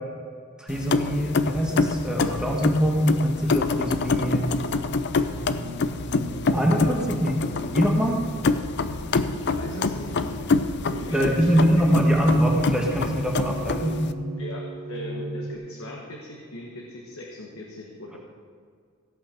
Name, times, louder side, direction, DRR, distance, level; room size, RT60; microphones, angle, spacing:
voice 1, 0.6-4.5 6.5-7.3 7.7-8.2 11.1-14.0, equal, 5° right, -1 dB, 1.2 m, -23 dB
sound 1, 0.7-14.1, left 3 dB, 55° left, 0.5 m, -26 dB
sound 2, 5.3-15.6, right 1 dB, 75° right, 1.1 m, -37 dB
voice 2, 9.3-10.3 10.9-11.7 14.4-18.2, left 1 dB, 75° left, -1 dB, 1.4 m, -39 dB
16.0 x 5.6 x 5.9 m, 2.1 s
head